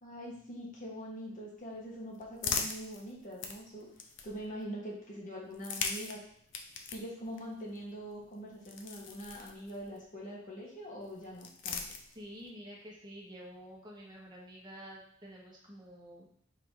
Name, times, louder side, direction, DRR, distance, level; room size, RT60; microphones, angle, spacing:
voice 1, 0.0-3.9 4.2-6.2 6.9-12.0, equal, 40° left, -4 dB, 1.3 m, -43 dB
sound 1, 1.6-4.6 5.4-10.0 11.0-12.5, left 5 dB, 65° left, 0.5 m, -41 dB
voice 2, 12.1-16.3, equal, 20° right, -4 dB, 1.1 m, -49 dB
4.5 x 2.8 x 3.7 m, 0.67 s
head